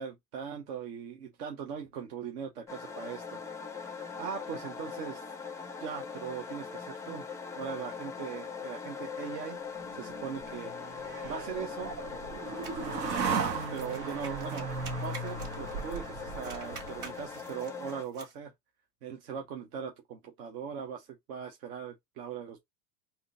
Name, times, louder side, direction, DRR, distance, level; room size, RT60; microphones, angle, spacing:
voice 1, 0.0-3.4 3.9-5.2 5.8-7.3 7.5-9.6 9.9-10.7 11.2-11.9 13.7-14.7 15.0-18.5 19.0-22.6, right 7 dB, 70° right, 0.9 m, -40 dB
sound 1, 2.7-18.0, left 5 dB, 10° left, 0.3 m, -41 dB
sound 2, 9.8-17.2, right 5 dB, 90° right, 1.0 m, -36 dB
sound 3, 12.6-16.1 16.3-18.3, right 5 dB, 35° right, 1.7 m, -49 dB
3.5 x 2.7 x 2.5 m
hypercardioid pair, 80°, 49 cm